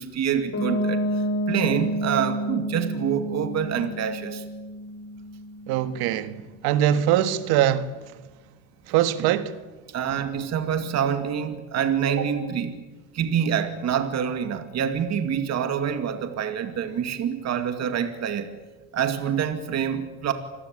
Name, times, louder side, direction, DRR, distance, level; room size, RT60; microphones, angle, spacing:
voice 1, 0.0-4.4 9.9-12.8 13.1-18.5 18.9-20.3, right 8 dB, 45° right, 2.4 m, -26 dB
Piano, 0.5-6.2, equal, 40° left, 5.5 m, -29 dB
voice 2, 5.7-6.4 6.6-7.9 8.9-9.6, right 11 dB, 85° right, 1.9 m, -22 dB
27.0 x 21.0 x 8.9 m
cardioid pair, 130°, 37 cm